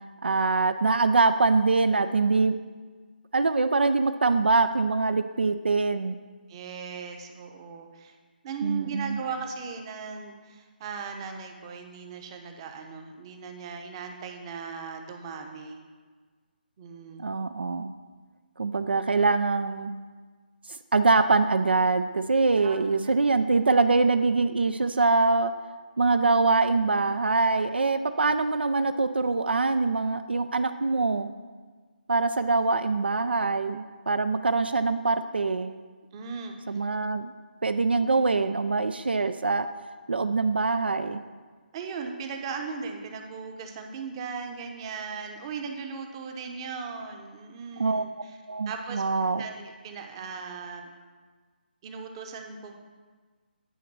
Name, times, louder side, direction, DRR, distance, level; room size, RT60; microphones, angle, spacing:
voice 1, 0.2-2.6 3.3-6.2 8.6-9.2 17.2-17.9 18.6-19.9 20.7-25.5 26.0-31.3 32.1-35.8 36.7-37.3 37.6-39.7 40.1-41.2 47.8-48.0 48.5-49.4, right 3 dB, 85° right, 10 dB, 0.4 m, -24 dB
voice 2, 6.5-8.2 8.4-15.8 16.8-17.3 22.6-22.8 36.1-36.6 41.7-48.4 48.7-49.0 49.4-50.9 51.8-52.8, right 5 dB, 30° right, 4 dB, 0.8 m, -38 dB
9.2 x 3.9 x 6.0 m, 1.5 s
figure-of-eight pair, 150°, 5 cm